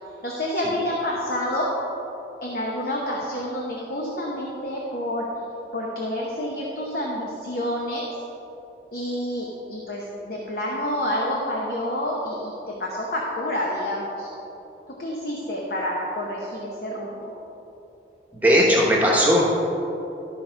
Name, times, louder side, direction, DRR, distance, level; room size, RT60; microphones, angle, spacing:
voice 1, 0.2-1.7 2.4-5.3 5.7-8.1 8.9-14.3 15.0-17.3, left 1 dB, 55° left, -3 dB, 1.0 m, -28 dB
voice 2, 18.3-19.4, equal, 10° right, -4 dB, 1.1 m, -18 dB
13.0 x 5.2 x 4.6 m, 3.0 s
head